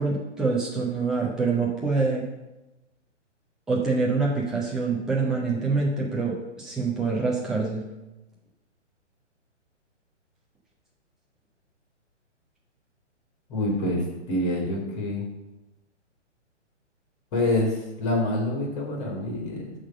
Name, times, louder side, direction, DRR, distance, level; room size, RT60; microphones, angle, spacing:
voice 1, 0.0-2.3 3.7-7.8, right 4 dB, ahead, -4 dB, 0.7 m, -25 dB
voice 2, 13.5-15.3 17.3-19.7, left 1 dB, 30° left, -1 dB, 2.8 m, -26 dB
11.0 x 3.8 x 6.4 m, 1.0 s
figure-of-eight pair, 125°, 36 cm